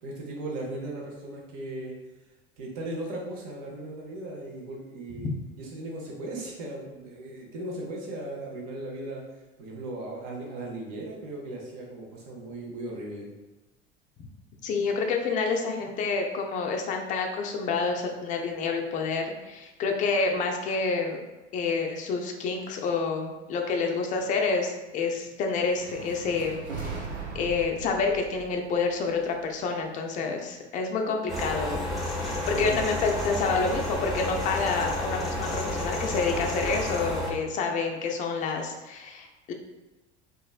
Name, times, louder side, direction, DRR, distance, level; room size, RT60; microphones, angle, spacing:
voice 1, 0.0-2.0 2.6-5.3 5.6-9.2 9.6-13.3 32.4-32.8, right 1 dB, 50° right, -1 dB, 0.8 m, -37 dB
voice 2, 14.6-21.2 21.5-27.0 27.3-31.9 32.2-39.5, left 4 dB, 25° left, 3 dB, 0.3 m, -28 dB
sound 1, 25.6-29.8, right 4 dB, 85° right, 0.5 m, -39 dB
sound 2, 31.3-37.3, left 1 dB, ahead, 0.8 m, -31 dB
3.0 x 2.4 x 2.3 m, 1.1 s
figure-of-eight pair, 70°, 33 cm